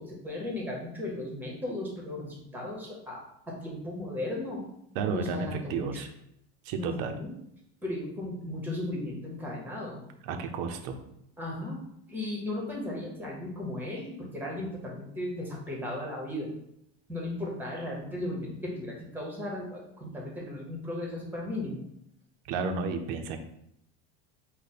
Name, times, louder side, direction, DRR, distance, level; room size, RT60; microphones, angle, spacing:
voice 1, 0.0-3.2 3.5-4.6 5.1-6.0 6.8-7.3 7.8-10.0 11.4-11.8 12.1-16.6 17.1-21.9, left 1 dB, 5° right, -1 dB, 0.9 m, -36 dB
voice 2, 4.9-6.1 6.6-7.2 10.2-11.0 22.4-23.4, right 5 dB, 60° right, 6 dB, 0.6 m, -32 dB
5.0 x 2.2 x 4.2 m, 0.76 s
cardioid pair, 155°, 31 cm